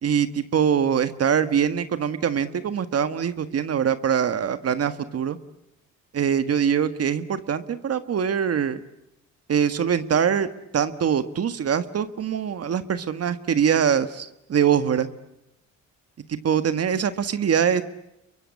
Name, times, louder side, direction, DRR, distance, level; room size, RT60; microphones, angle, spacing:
voice 1, 0.0-5.4 6.1-8.8 9.5-15.1 16.3-17.8, right 8 dB, 55° right, 11 dB, 1.6 m, -23 dB
29.5 x 23.5 x 8.6 m, 0.84 s
cardioid pair, 90°, 30 cm